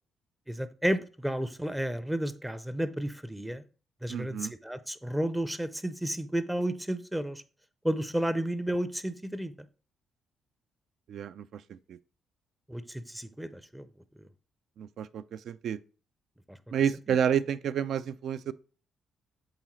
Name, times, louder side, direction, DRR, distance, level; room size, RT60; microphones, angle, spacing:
voice 1, 0.5-3.6 4.0-7.4 7.8-9.5 12.7-13.9 16.5-16.6, right 1 dB, 5° right, 0.5 m, -32 dB
voice 2, 4.1-4.5 11.1-12.0 14.8-15.8 16.7-18.5, right 8 dB, 70° right, 0.3 m, -30 dB
7.6 x 4.0 x 3.1 m
cardioid pair, 95°, 0 cm